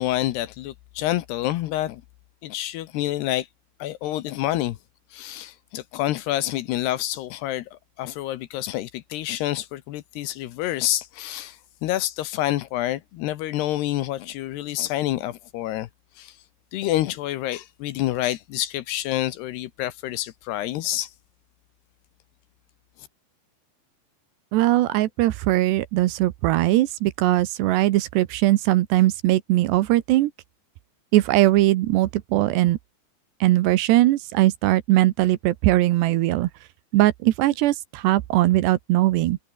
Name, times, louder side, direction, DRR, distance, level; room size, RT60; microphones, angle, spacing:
voice 1, 0.0-2.0 2.4-3.5 3.8-4.8 5.1-15.9 16.2-16.4 16.7-21.1, left 14 dB, 75° left, 2.8 m, -28 dB
voice 2, 24.5-30.3 31.1-32.8 33.4-36.5 36.9-39.4, right 16 dB, 75° right, 2.9 m, -20 dB
omnidirectional pair, 5.3 m